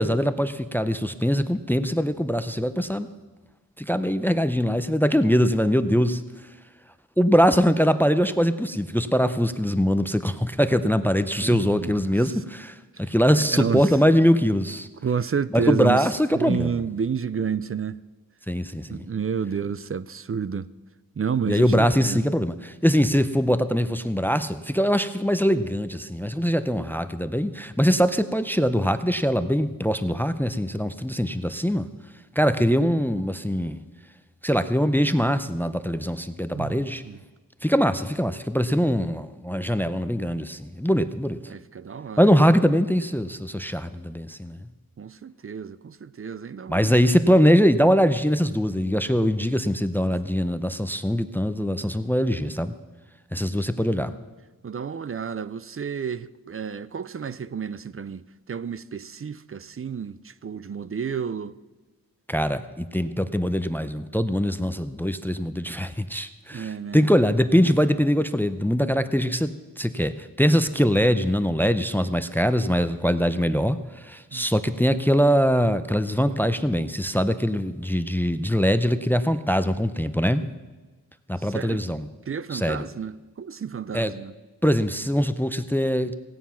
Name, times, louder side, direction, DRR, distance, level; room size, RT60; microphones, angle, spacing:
voice 1, 0.0-3.1 3.8-6.2 7.2-14.9 15.5-16.7 18.5-19.1 21.5-31.9 32.4-33.8 34.4-37.0 37.6-41.4 42.2-44.6 46.7-52.7 53.3-54.1 62.3-69.5 69.8-80.4 81.3-82.1 82.5-82.9 83.9-84.1 84.6-86.1, equal, 5° left, 0.5 m, -22 dB
voice 2, 11.4-12.3 13.4-13.9 15.0-16.1 16.3-18.0 18.9-20.7 21.2-22.2 36.5-37.2 39.0-39.1 41.5-42.2 45.0-47.0 54.6-61.6 66.5-67.1 74.3-74.5 81.4-81.8 82.3-84.3, right 6 dB, 40° right, 0.5 m, -30 dB
17.0 x 9.3 x 5.7 m
wide cardioid pair, 95°, 34 cm